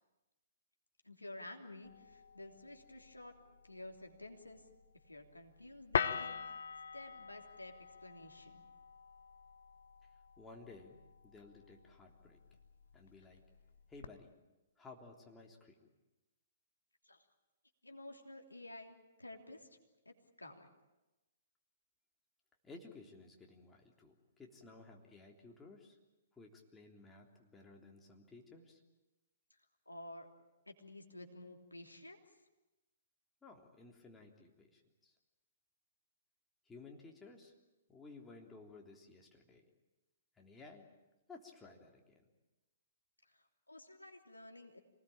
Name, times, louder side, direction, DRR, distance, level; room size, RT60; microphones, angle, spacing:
voice 1, 1.0-3.3 3.6-4.7 5.1-6.5 6.9-8.6 17.0-17.3 17.8-19.7 20.0-20.7 29.8-30.3 30.7-32.2 43.2-44.8, left 1 dB, 90° left, 3 dB, 3.2 m, -52 dB
sound 1, 1.8-14.0, left 7 dB, 60° left, 1.1 m, -45 dB
voice 2, 10.4-12.4 12.9-13.4 13.9-14.3 14.8-15.9 22.6-26.0 26.4-28.8 33.4-35.2 36.7-37.5 37.9-39.6 40.4-40.9 41.3-42.2, left 3 dB, 10° left, 0 dB, 3.5 m, -56 dB
26.5 x 19.5 x 8.9 m, 1.1 s
figure-of-eight pair, 120°, 0 cm